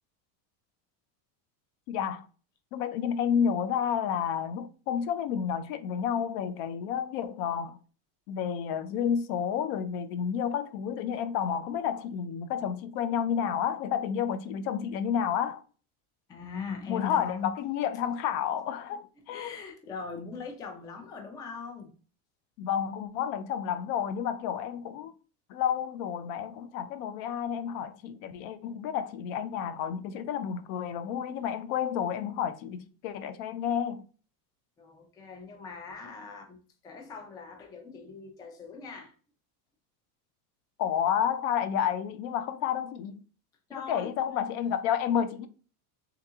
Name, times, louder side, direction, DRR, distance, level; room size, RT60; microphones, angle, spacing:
voice 1, 1.9-2.3 2.7-7.8 8.3-15.6 16.9-19.5 22.6-25.1 25.5-34.0 40.8-43.2 43.7-45.5, left 8 dB, 65° left, 0.6 m, -30 dB
voice 2, 16.3-17.5 19.3-21.9 34.8-36.6 36.8-39.1 43.7-44.1, left 5 dB, 10° left, 0.3 m, -40 dB
3.5 x 2.9 x 3.5 m
supercardioid pair, 140°, 47 cm